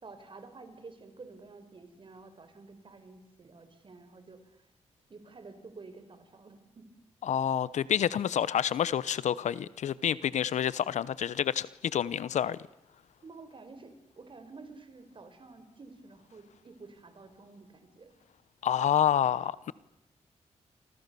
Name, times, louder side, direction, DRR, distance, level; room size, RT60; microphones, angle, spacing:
voice 1, 0.0-4.6 5.1-6.9 13.2-18.1, right 3 dB, 45° right, 4.9 m, -50 dB
voice 2, 7.2-12.6 18.6-19.7, left 9 dB, 85° left, 0.9 m, -28 dB
30.0 x 25.5 x 7.0 m
cardioid pair, 85°, 12 cm